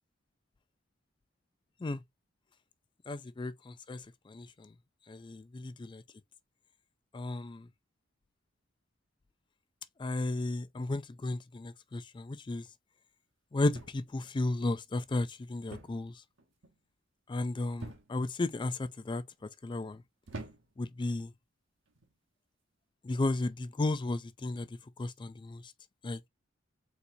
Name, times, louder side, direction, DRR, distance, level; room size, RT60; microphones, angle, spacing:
voice 1, 3.1-4.7 5.1-6.0 7.1-7.7 10.0-12.7 13.5-16.1 17.3-20.0 20.8-21.3 23.0-25.7 26.0-26.2, left 2 dB, 25° left, 0.4 m, -34 dB
sound 1, 13.7-14.3 15.7-16.1 16.4-16.8 17.8-18.3 19.1-19.4 20.3-20.9 21.9-22.1, right 2 dB, 80° right, 1.1 m, -46 dB
4.1 x 4.1 x 2.6 m
head